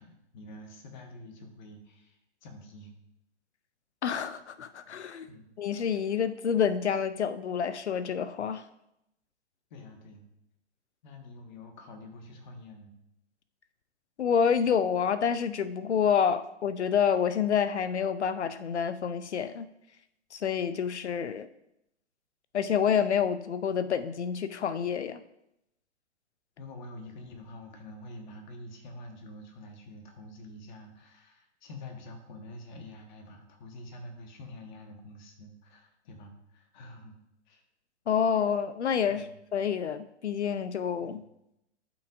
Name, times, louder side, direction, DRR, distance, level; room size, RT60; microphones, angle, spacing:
voice 1, 0.0-2.9 5.3-5.5 9.7-10.3 11.0-13.0 26.6-37.2 37.5-37.6 39.1-39.4 41.0-41.2, left 1 dB, 40° left, 4 dB, 1.6 m, -47 dB
voice 2, 4.0-5.3 5.6-8.6 14.2-19.7 20.3-21.5 22.5-25.2 38.1-41.2, left 7 dB, 70° left, 13 dB, 0.6 m, -28 dB
12.0 x 6.0 x 2.6 m, 0.83 s
figure-of-eight pair, 125°, 35 cm